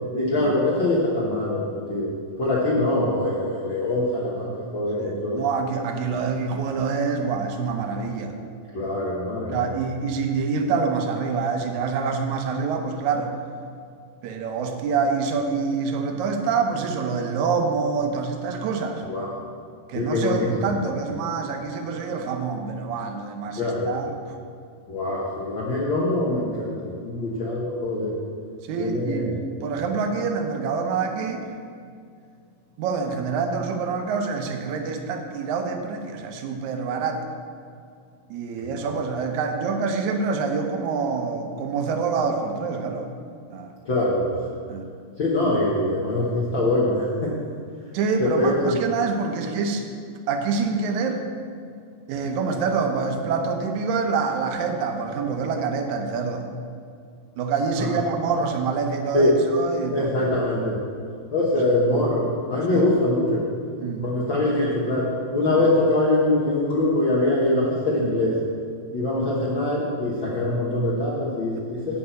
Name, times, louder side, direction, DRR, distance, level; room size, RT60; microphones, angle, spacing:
voice 1, 0.1-2.1 2.4-5.4 8.7-9.8 19.0-19.3 19.9-20.5 23.6-23.9 24.9-28.1 28.8-29.4 38.6-38.7 43.9-44.4 45.2-47.3 48.2-48.8 57.8-58.0 59.1-59.3 59.9-60.8 61.3-63.5 64.0-68.4 68.9-72.0, left 1 dB, 90° left, -6 dB, 1.0 m, -23 dB
voice 2, 5.0-8.3 9.5-13.3 14.2-19.0 19.9-24.1 28.6-29.3 29.6-31.5 32.8-37.2 38.3-43.1 43.5-43.7 44.7-44.9 47.9-49.8 50.3-51.2 52.1-56.5 57.4-60.3 62.7-62.9 63.8-64.1, right 5 dB, 75° right, 4 dB, 1.8 m, -26 dB
8.5 x 5.9 x 8.0 m, 2.3 s
omnidirectional pair, 4.2 m